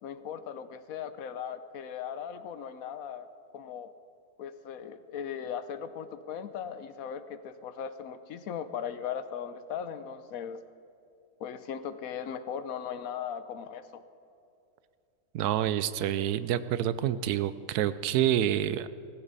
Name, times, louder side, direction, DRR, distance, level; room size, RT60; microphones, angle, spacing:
voice 1, 0.0-3.3 3.5-3.9 4.4-10.6 11.4-14.0, left 8 dB, 70° left, 11 dB, 1.1 m, -38 dB
voice 2, 15.3-18.9, right 11 dB, 80° right, 15 dB, 1.1 m, -28 dB
18.0 x 15.0 x 4.1 m, 2.6 s
omnidirectional pair, 1.6 m